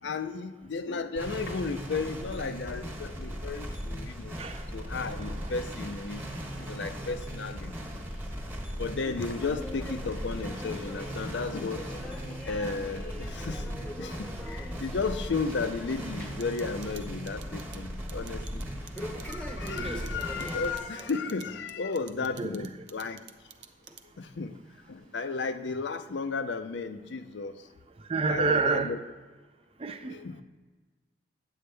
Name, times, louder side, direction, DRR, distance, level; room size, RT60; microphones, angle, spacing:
voice 1, 0.0-4.4 4.7-6.2 6.6-8.1 8.8-11.9 12.5-13.7 14.0-18.6 18.9-23.2 24.2-24.5 24.9-27.7 28.3-29.0 30.0-30.4, left 4 dB, 75° left, 10 dB, 0.5 m, -34 dB
sound 1, 1.2-20.8, equal, 10° right, 1.2 m, -38 dB
voice 2, 5.1-5.5 19.7-20.2 22.4-22.5 28.1-28.9 29.8-30.2, right 4 dB, 30° right, 9 dB, 0.5 m, -29 dB
sound 2, 9.0-16.5 16.8-17.2 17.5-17.6 18.9-21.6 22.0-22.2 22.9-23.0 23.9-24.0 24.8-24.9, left 1 dB, 5° left, 0.9 m, -44 dB
sound 3, 16.4-24.3, right 10 dB, 75° right, 0.6 m, -49 dB
9.5 x 7.9 x 3.3 m, 1.3 s
head